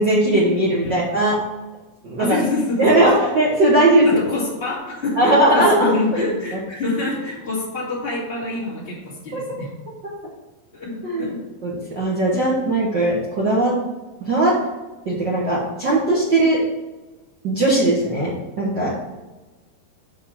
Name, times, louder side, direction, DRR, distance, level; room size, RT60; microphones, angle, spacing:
voice 1, 0.0-1.3 2.0-2.4 2.8-4.2 5.2-5.9 9.3-9.4 11.0-11.3 11.6-13.7 14.3-14.5 15.0-16.6 17.4-18.9, right 1 dB, 80° right, -5 dB, 1.0 m, -18 dB
voice 2, 2.2-3.3 4.0-9.7 10.7-11.4 12.3-12.5, left 2 dB, 15° left, -6 dB, 2.3 m, -26 dB
7.4 x 5.5 x 5.7 m, 1.1 s
omnidirectional pair, 4.3 m